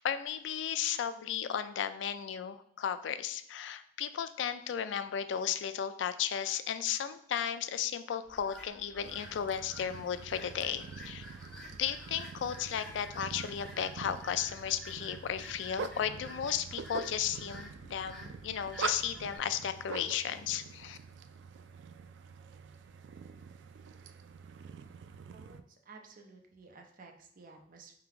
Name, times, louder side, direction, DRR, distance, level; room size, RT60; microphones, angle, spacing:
voice 1, 0.0-11.3 11.8-21.0, left 9 dB, 90° left, 12 dB, 0.3 m, -35 dB
sound 1, 8.3-19.4, equal, 5° left, 1.3 m, -51 dB
sound 2, 9.0-25.6, right 6 dB, 80° right, 0.3 m, -45 dB
voice 2, 25.3-27.9, right 4 dB, 50° right, 2 dB, 0.7 m, -54 dB
3.8 x 2.8 x 4.5 m, 0.69 s
head